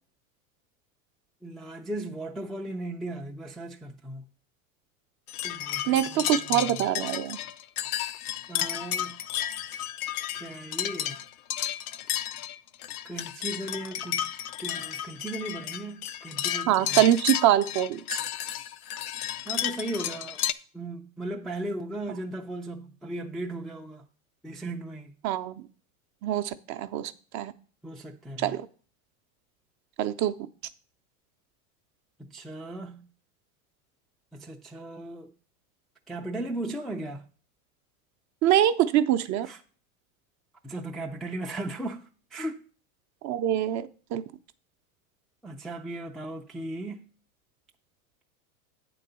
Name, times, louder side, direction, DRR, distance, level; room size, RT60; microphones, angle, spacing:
voice 1, 1.4-4.2 5.4-6.9 8.5-9.2 10.3-11.2 13.0-14.3 14.6-17.0 19.5-20.4 20.7-24.1 24.4-25.2 27.8-28.6 32.2-33.0 34.3-35.3 36.1-37.2 39.4-39.6 40.6-42.0 42.3-42.6 45.4-47.1, right 1 dB, ahead, 0.3 m, -37 dB
sound 1, 5.3-20.5, left 11 dB, 85° left, 0.6 m, -32 dB
voice 2, 5.9-7.4 16.7-18.2 25.2-25.5 26.2-27.5 28.4-28.6 30.0-30.3 38.4-39.5 43.2-44.2, right 12 dB, 40° right, 0.6 m, -24 dB
8.4 x 3.9 x 6.7 m
hypercardioid pair, 105°, 43 cm